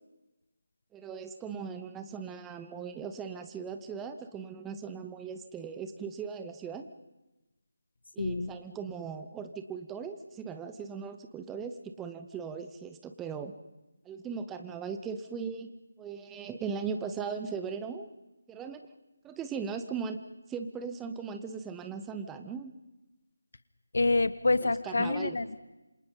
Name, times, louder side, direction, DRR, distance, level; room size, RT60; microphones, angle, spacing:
voice 1, 0.9-6.9 8.1-13.5 14.0-15.7 16.0-18.1 18.5-18.8 19.2-20.2 20.5-22.7 24.6-25.4, right 6 dB, 10° right, 8 dB, 0.9 m, -38 dB
voice 2, 8.2-8.5 23.9-25.6, left 3 dB, 55° left, 16 dB, 1.3 m, -27 dB
27.5 x 26.5 x 5.5 m, 1.0 s
figure-of-eight pair, 155°, 0 cm